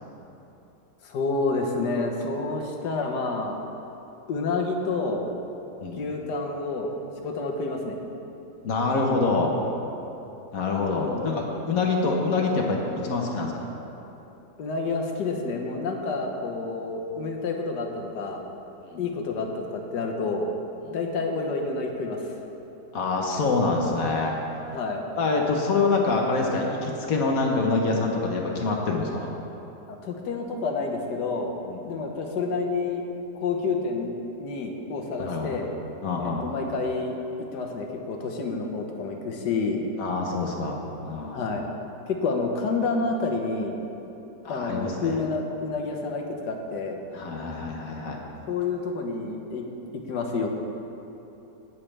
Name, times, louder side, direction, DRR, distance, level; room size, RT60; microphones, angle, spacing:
voice 1, 1.0-3.6 4.3-5.3 6.0-6.9 7.2-8.0 10.9-11.2 14.6-18.4 19.0-20.5 20.9-22.3 24.7-25.0 29.9-31.5 31.8-33.0 33.3-34.1 34.4-35.7 36.2-39.8 41.3-41.6 42.1-43.8 44.5-47.0 48.5-49.6 49.9-50.5, left 3 dB, 80° left, 2 dB, 1.6 m, -29 dB
voice 2, 8.6-9.5 10.5-13.7 18.9-19.0 20.9-21.0 22.9-24.4 25.2-29.3 31.7-31.8 35.2-35.6 36.0-36.5 40.0-41.4 44.4-45.2 47.1-48.2, left 3 dB, 60° left, 0 dB, 1.4 m, -26 dB
17.5 x 7.5 x 3.3 m, 3.0 s
omnidirectional pair, 1.8 m